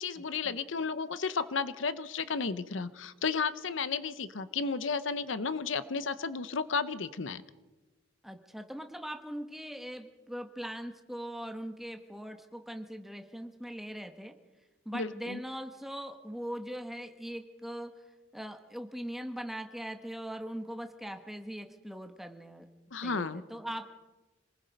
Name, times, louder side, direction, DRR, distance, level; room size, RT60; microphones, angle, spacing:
voice 1, 0.0-7.4 14.9-15.4 22.9-23.4, left 5 dB, 70° left, 14 dB, 0.8 m, -33 dB
voice 2, 8.2-14.4 14.8-17.9 18.3-22.7 23.0-23.9, equal, ahead, 7 dB, 1.3 m, -41 dB
26.5 x 20.0 x 5.3 m, 1.2 s
head